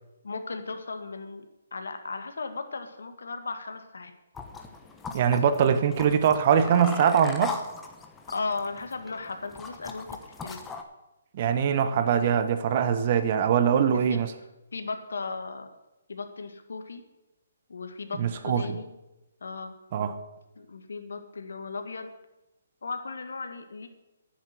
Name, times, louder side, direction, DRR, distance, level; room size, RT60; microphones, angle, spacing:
voice 1, 0.2-1.5 1.7-4.1 8.3-10.6 13.9-15.7 16.1-17.0 17.7-18.9 19.4-19.7 20.6-22.1 22.8-23.9, left 4 dB, 80° left, 7 dB, 1.8 m, -36 dB
sound 1, 4.3-10.8, left 5 dB, 10° left, 1.1 m, -39 dB
voice 2, 5.1-7.6 11.3-14.3 18.2-18.8 19.9-20.1, right 8 dB, 40° right, 10 dB, 1.1 m, -23 dB
10.5 x 7.4 x 9.4 m, 0.96 s
hypercardioid pair, 155°, 0 cm